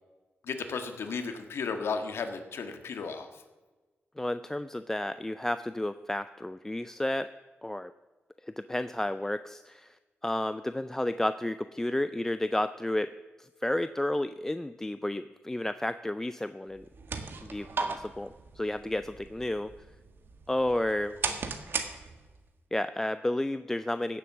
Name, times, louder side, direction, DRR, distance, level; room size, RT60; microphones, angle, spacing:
voice 1, 0.4-3.3, left 5 dB, 75° left, 7 dB, 1.6 m, -34 dB
voice 2, 4.2-7.3 7.6-7.9 8.4-10.0 10.2-16.8 17.4-19.7 20.5-21.1 22.7-24.2, left 1 dB, 10° left, 12 dB, 0.4 m, -31 dB
sound 1, 16.7-22.5, right 4 dB, 55° right, 1.5 m, -37 dB
16.5 x 7.9 x 7.2 m, 1.2 s
wide cardioid pair, 130°, 4 cm